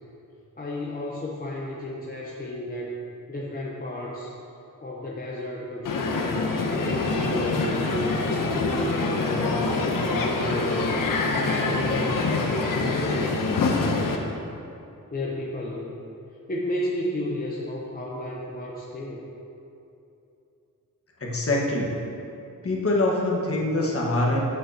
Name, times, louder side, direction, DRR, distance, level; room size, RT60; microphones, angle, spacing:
voice 1, 0.6-2.9 3.3-4.3 4.8-8.4 8.8-11.0 11.4-13.4 15.1-16.0 16.5-19.2, left 1 dB, 25° left, -4 dB, 0.8 m, -33 dB
Crowd, 5.8-14.2, left 3 dB, 70° left, 0.9 m, -25 dB
voice 2, 21.2-22.0 22.6-24.4, left 2 dB, 40° left, -3 dB, 1.5 m, -24 dB
9.2 x 8.2 x 2.9 m, 2.8 s
wide cardioid pair, 105°, 34 cm